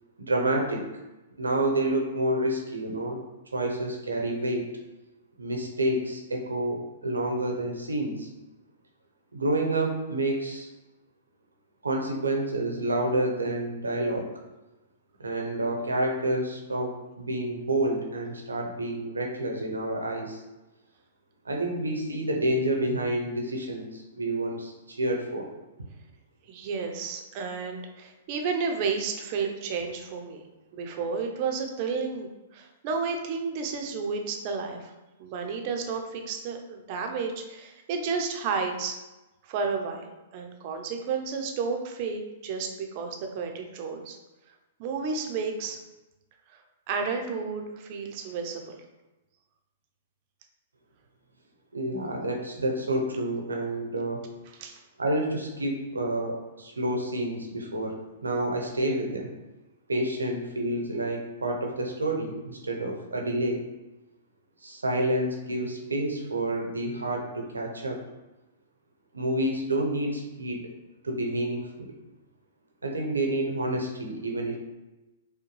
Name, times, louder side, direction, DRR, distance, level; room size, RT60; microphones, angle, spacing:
voice 1, 0.3-0.9 1.4-3.2 3.5-4.7 5.4-8.3 9.3-10.7 11.8-14.3 15.2-20.4 21.4-25.5 51.7-54.2 55.0-58.0 58.2-59.3 59.9-63.6 64.6-68.0 69.1-70.7 71.0-71.9 72.8-74.6, right 1 dB, 90° right, 1 dB, 0.8 m, -29 dB
voice 2, 26.5-30.5 30.7-34.9 35.2-39.0 39.4-44.2 44.8-45.8 46.5-46.6 46.9-48.8 54.6-54.8, right 5 dB, 45° right, 3 dB, 0.6 m, -32 dB
5.0 x 2.2 x 3.1 m, 1.1 s
hypercardioid pair, 115°, 0 cm